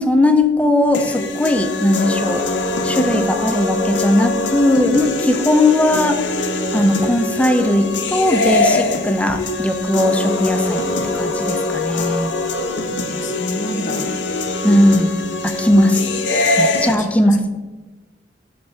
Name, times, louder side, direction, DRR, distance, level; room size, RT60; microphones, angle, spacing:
voice 1, 0.0-12.3 14.6-15.1 15.4-16.1 16.6-17.4, left 1 dB, 5° left, 7 dB, 0.5 m, -18 dB
sound 1, 0.9-16.9, left 2 dB, 85° left, 0.7 m, -22 dB
voice 2, 12.9-14.1 15.7-16.0 16.8-17.5, left 1 dB, 45° left, 6 dB, 0.7 m, -29 dB
8.1 x 3.3 x 5.6 m, 1.2 s
head